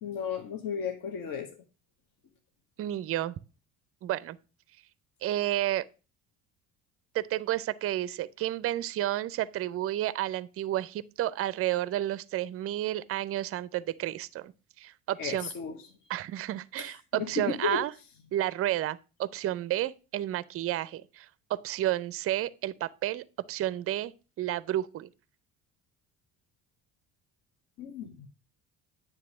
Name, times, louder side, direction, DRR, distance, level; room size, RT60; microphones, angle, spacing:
voice 1, 0.0-1.6 15.2-15.8 16.8-17.8 27.8-28.3, left 6 dB, 55° left, 1.1 m, -34 dB
voice 2, 2.8-3.4 4.0-4.4 5.2-5.8 7.1-14.5 14.8-15.5 16.1-17.9 18.3-24.1 24.4-25.1, right 13 dB, 35° right, 0.4 m, -31 dB
9.3 x 3.2 x 5.8 m
hypercardioid pair, 55°, 42 cm